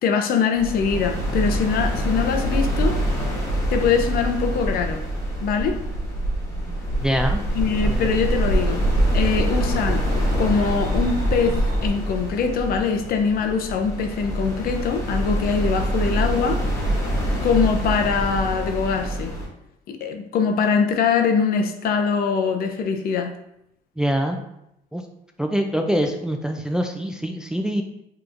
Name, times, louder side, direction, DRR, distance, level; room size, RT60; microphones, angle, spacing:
voice 1, 0.0-3.0 3.7-5.0 5.4-5.8 7.5-8.8 9.1-10.0 10.4-16.6 17.4-19.3 19.9-23.4, left 6 dB, 60° left, 5 dB, 0.6 m, -23 dB
sound 1, 0.5-19.5, equal, 15° left, 1.3 m, -26 dB
sound 2, 4.1-11.9, right 1 dB, 55° right, 1.5 m, -26 dB
voice 2, 7.0-7.4 7.8-8.1 24.0-24.4 24.9-25.0 25.4-27.8, equal, 5° right, 3 dB, 0.3 m, -24 dB
4.8 x 3.0 x 2.5 m, 0.80 s
cardioid pair, 110°, 17 cm